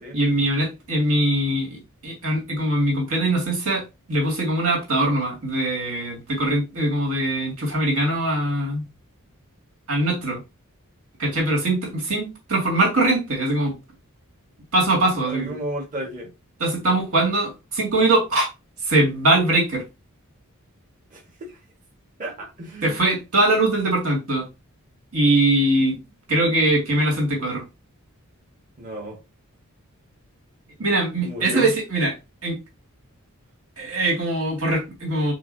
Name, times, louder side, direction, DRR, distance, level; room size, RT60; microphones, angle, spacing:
voice 1, 0.1-8.8 9.9-10.4 11.2-13.7 14.7-15.5 16.6-18.5 18.8-19.8 22.8-24.5 25.1-26.0 26.3-27.6 30.8-32.1 32.4-32.6 33.8-35.3, right 1 dB, 80° right, 2.1 m, -22 dB
voice 2, 15.3-16.3 21.1-21.2 22.2-22.9 28.8-29.2 31.2-31.7, right 1 dB, 35° right, 1.4 m, -32 dB
6.9 x 2.6 x 2.7 m
head